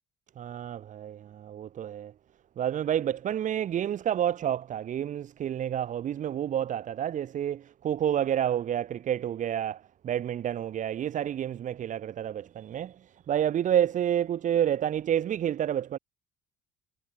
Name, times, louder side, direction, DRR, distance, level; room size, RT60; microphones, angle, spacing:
voice 1, 0.4-2.1 2.6-16.0, right 10 dB, 50° right, 0.9 m, -29 dB
cardioid pair, 110°, 17 cm